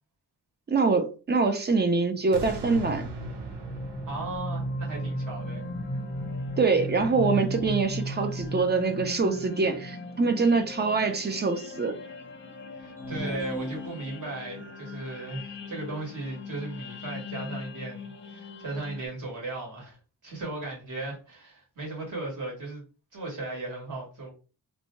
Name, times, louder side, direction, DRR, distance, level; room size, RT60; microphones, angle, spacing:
voice 1, 0.7-3.1 6.6-12.0, right 4 dB, 25° right, 0.4 m, -24 dB
sound 1, 2.3-19.1, left 1 dB, 30° left, 0.5 m, -37 dB
sound 2, 2.3-7.4 7.9-8.0, right 2 dB, 90° right, 0.7 m, -41 dB
voice 2, 4.1-5.7 12.7-20.0 20.2-22.8 23.1-24.3, right 2 dB, 50° right, 1.5 m, -36 dB
sound 3, 13.0-14.6, equal, 5° right, 0.9 m, -38 dB
2.6 x 2.2 x 3.0 m
wide cardioid pair, 145°, 39 cm